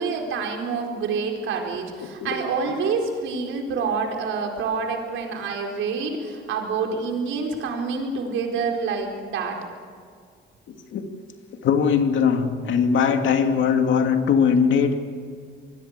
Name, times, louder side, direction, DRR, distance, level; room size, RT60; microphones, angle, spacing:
voice 1, 0.0-9.6, right 5 dB, 85° right, 2 dB, 4.5 m, -27 dB
voice 2, 11.6-15.0, left 6 dB, 75° left, 5 dB, 2.5 m, -20 dB
26.5 x 21.0 x 8.2 m, 2.1 s
cardioid pair, 90°, 20 cm